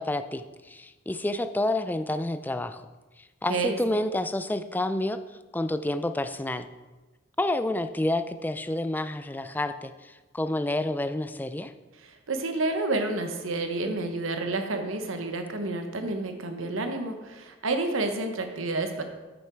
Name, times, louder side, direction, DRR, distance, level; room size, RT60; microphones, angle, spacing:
voice 1, 0.0-2.8 3.4-5.2 5.5-6.7 7.4-11.7, left 1 dB, 10° left, 10 dB, 0.3 m, -29 dB
voice 2, 12.3-19.0, right 2 dB, 80° right, 6 dB, 1.1 m, -29 dB
9.5 x 6.5 x 4.6 m, 1.2 s
head